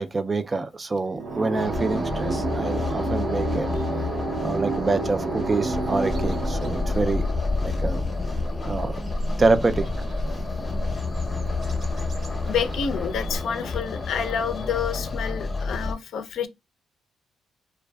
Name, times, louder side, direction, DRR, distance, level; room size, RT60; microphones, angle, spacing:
voice 1, 0.0-3.7 4.4-7.3 7.6-8.0 8.6-9.0 9.4-9.9, right 3 dB, 30° right, 0.3 m, -26 dB
sound 1, 1.1-8.8, right 3 dB, 85° right, 0.6 m, -30 dB
sound 2, 1.6-15.9, left 4 dB, 25° left, 0.7 m, -30 dB
sound 3, 5.8-13.4, equal, 50° right, 0.7 m, -32 dB
voice 2, 12.4-16.5, left 7 dB, 70° left, 0.5 m, -28 dB
2.5 x 2.2 x 2.2 m
cardioid pair, 90°, 0 cm